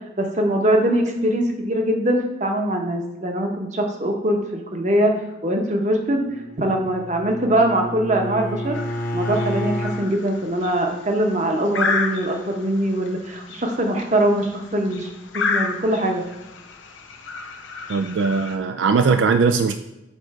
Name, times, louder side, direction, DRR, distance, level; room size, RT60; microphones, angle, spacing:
voice 1, 0.2-5.1 5.4-6.2 6.6-8.8 9.1-15.1 15.3-16.2, right 1 dB, 40° right, 2 dB, 0.9 m, -22 dB
Bowed string instrument, 6.3-10.1, left 1 dB, 45° left, 0.9 m, -29 dB
sound 1, 8.7-18.6, left 4 dB, 90° left, 0.8 m, -31 dB
voice 2, 17.9-19.8, right 5 dB, 75° right, 8 dB, 0.3 m, -19 dB
6.8 x 4.0 x 4.7 m, 0.96 s
head